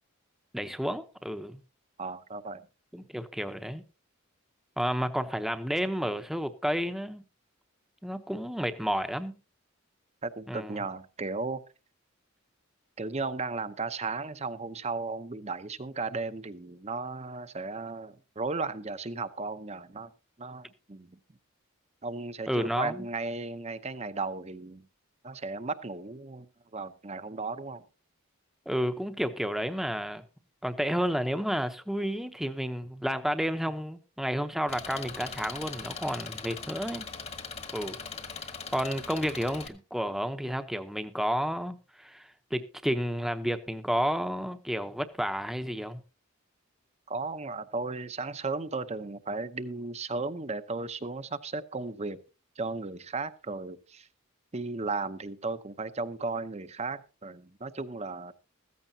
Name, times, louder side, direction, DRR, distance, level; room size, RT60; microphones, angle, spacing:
voice 1, 0.5-1.6 2.9-3.8 4.8-7.2 8.0-9.4 10.5-10.8 22.5-23.1 28.7-30.2 30.6-37.1 37.7-38.0 38.7-46.0, equal, ahead, 0.8 m, -31 dB
voice 2, 2.0-2.6 10.2-11.6 13.0-20.1 20.4-21.2 22.0-24.8 25.2-27.8 47.1-52.2 52.6-54.1 54.5-58.3, right 3 dB, 30° right, 0.7 m, -35 dB
Engine, 34.7-39.7, left 5 dB, 30° left, 1.2 m, -40 dB
15.0 x 14.5 x 2.8 m
head